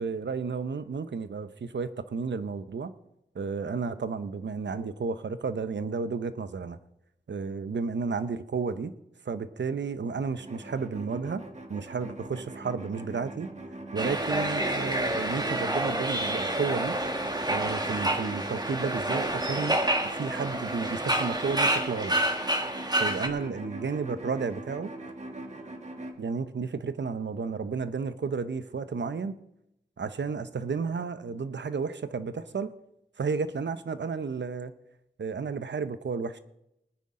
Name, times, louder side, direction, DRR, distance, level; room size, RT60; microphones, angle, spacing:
voice 1, 0.0-2.9 3.3-6.8 7.3-8.9 9.2-11.4 11.7-13.5 13.9-17.0 17.5-19.8 20.0-22.1 23.0-24.9 26.2-29.4 30.0-32.7 33.2-34.7 35.2-36.4, right 5 dB, 80° right, 12 dB, 0.8 m, -32 dB
sound 1, 10.4-26.1, right 1 dB, 40° right, 1.6 m, -42 dB
sound 2, 14.0-23.3, right 1 dB, 20° right, 1.7 m, -28 dB
20.5 x 9.5 x 3.8 m, 0.85 s
wide cardioid pair, 65°, 18 cm